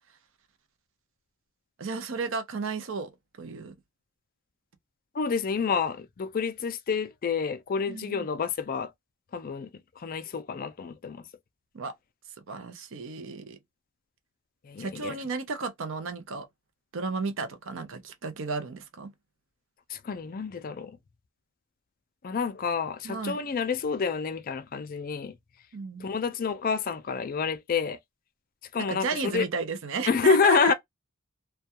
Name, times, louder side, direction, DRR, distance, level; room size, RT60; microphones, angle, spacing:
voice 1, 1.8-3.1 3.4-3.8 7.9-8.2 11.7-11.9 12.5-13.6 14.8-16.5 16.9-19.1 23.0-23.4 25.7-26.1 28.8-30.7, right 4 dB, 55° right, 0.5 m, -33 dB
voice 2, 5.1-8.9 9.3-9.7 10.0-11.2 14.6-15.2 19.9-21.0 22.2-25.3 26.0-28.0 28.7-29.5 30.1-30.7, left 5 dB, 40° left, 0.3 m, -28 dB
2.3 x 2.2 x 2.8 m
head